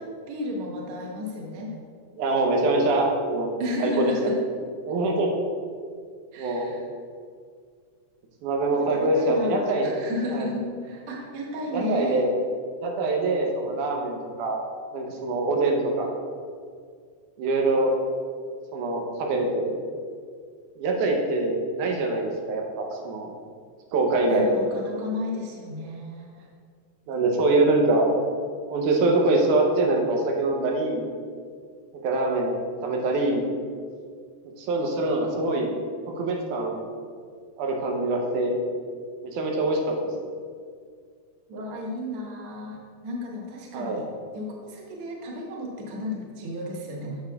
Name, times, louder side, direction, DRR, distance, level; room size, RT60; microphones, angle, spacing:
voice 1, 0.0-1.7 3.6-4.4 6.3-6.8 8.7-12.2 24.3-26.5 41.5-44.1 44.3-47.2, left 1 dB, 60° right, -1 dB, 1.5 m, -33 dB
voice 2, 2.2-3.5 3.8-4.4 4.9-5.3 6.4-6.7 8.4-9.9 10.3-10.5 11.7-12.3 12.8-14.6 14.9-16.1 17.4-17.9 18.7-19.8 20.8-23.3 23.9-24.5 27.1-28.1 28.7-31.0 32.0-32.5 32.8-33.5 34.6-35.7 36.2-36.8 37.6-38.6 39.2-40.1 43.7-44.0, right 2 dB, 90° right, 1 dB, 2.3 m, -24 dB
8.8 x 6.8 x 2.3 m, 2.1 s
omnidirectional pair, 3.5 m